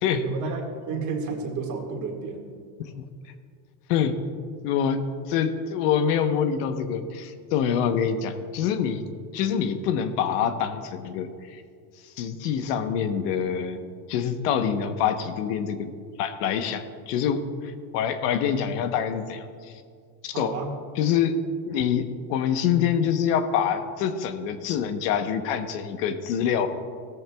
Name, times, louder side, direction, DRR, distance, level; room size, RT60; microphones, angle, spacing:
voice 1, 0.2-0.6 0.9-2.5 20.3-20.7, right 4 dB, 35° right, 2 dB, 1.9 m, -31 dB
voice 2, 4.6-5.0 5.3-9.1 9.3-11.6 12.2-13.8 14.1-15.9 16.2-19.4 20.2-20.5 21.0-21.3 21.7-26.7, left 8 dB, 70° left, 8 dB, 1.1 m, -25 dB
17.0 x 14.0 x 2.3 m, 2.1 s
supercardioid pair, 130°, 49 cm